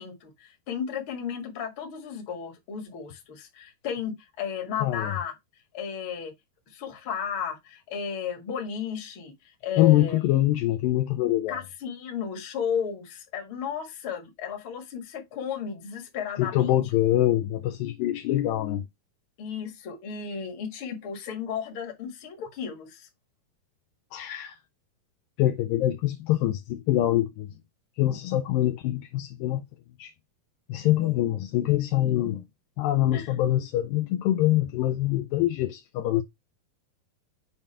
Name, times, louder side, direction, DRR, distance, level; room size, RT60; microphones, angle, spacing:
voice 1, 0.0-5.3 5.7-6.3 6.7-10.2 11.5-16.8 19.4-23.1 33.1-33.3, left 7 dB, 50° left, 1.6 m, -34 dB
voice 2, 4.8-5.1 9.8-11.6 16.4-18.8 24.1-24.6 25.4-27.5 28.0-29.6 30.0-30.1 30.7-32.4 32.8-36.2, left 14 dB, 80° left, 2.1 m, -24 dB
7.2 x 2.4 x 5.4 m
omnidirectional pair, 4.4 m